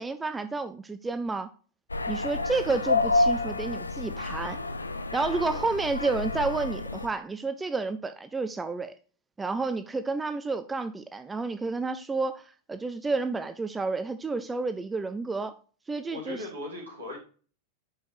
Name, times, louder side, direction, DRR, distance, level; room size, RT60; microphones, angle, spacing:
voice 1, 0.0-1.5 2.1-4.6 5.1-8.9 9.4-12.4 12.7-15.6 15.9-16.4, right 3 dB, 10° right, 0.4 m, -30 dB
sound 1, 1.9-7.1, left 2 dB, 80° left, 0.4 m, -29 dB
voice 2, 5.3-5.6 16.1-17.2, left 2 dB, 75° right, 3.1 m, -39 dB
5.4 x 5.1 x 4.7 m
figure-of-eight pair, 90°, 0 cm